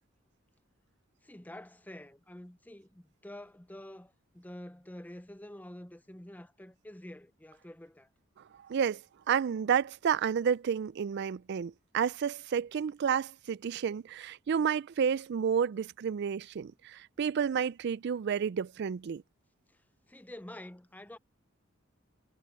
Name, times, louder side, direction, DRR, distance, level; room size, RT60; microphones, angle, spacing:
voice 1, 1.2-8.1 19.7-19.8 20.1-21.2, left 1 dB, 10° left, 0.7 m, -48 dB
voice 2, 8.7-9.0 9.3-19.2, right 7 dB, 55° right, 0.3 m, -30 dB
head